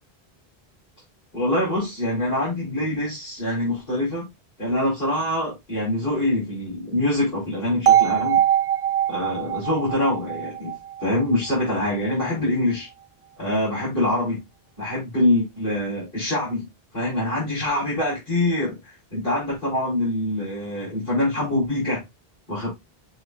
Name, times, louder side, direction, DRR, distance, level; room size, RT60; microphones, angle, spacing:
voice 1, 1.3-4.3 4.6-8.4 9.1-10.7 11.0-12.9 13.4-14.4 14.8-16.6 16.9-22.0 22.5-22.7, left 1 dB, 60° left, 5.1 m, -24 dB
sound 1, 7.9-11.8, right 10 dB, 80° right, 0.8 m, -22 dB
8.1 x 5.6 x 2.4 m
omnidirectional pair, 1.0 m